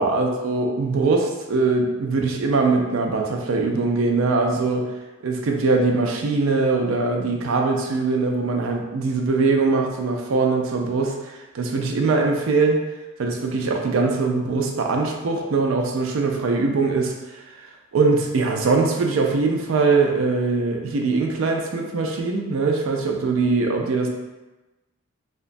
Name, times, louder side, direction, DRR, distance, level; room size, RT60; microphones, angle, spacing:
voice 1, 0.0-4.9 5.2-12.8 13.2-17.2 17.9-24.1, right 3 dB, 65° right, 2 dB, 0.4 m, -22 dB
2.9 x 2.2 x 2.5 m, 1.1 s
head